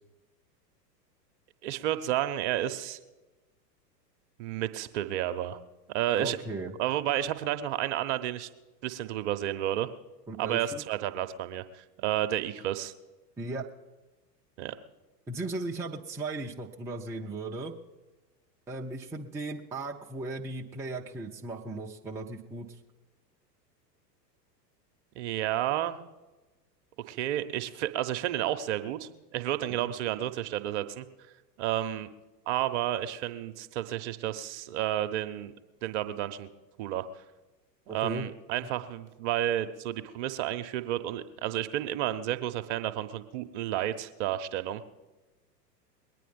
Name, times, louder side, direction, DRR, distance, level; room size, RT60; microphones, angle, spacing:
voice 1, 1.6-3.0 4.4-5.6 5.9-6.4 6.8-8.5 8.8-9.9 10.4-12.9 14.6-14.7 25.1-26.0 27.1-31.0 31.6-32.1 32.5-35.5 35.8-36.5 36.8-37.1 37.9-44.8, right 12 dB, 45° right, 9 dB, 1.0 m, -31 dB
voice 2, 6.2-6.8 10.3-10.8 13.4-13.7 15.3-17.7 18.7-22.7 29.7-29.9 37.9-38.3, right 2 dB, 5° right, -1 dB, 0.6 m, -37 dB
21.5 x 9.3 x 5.3 m, 1.1 s
figure-of-eight pair, 95°, 50 cm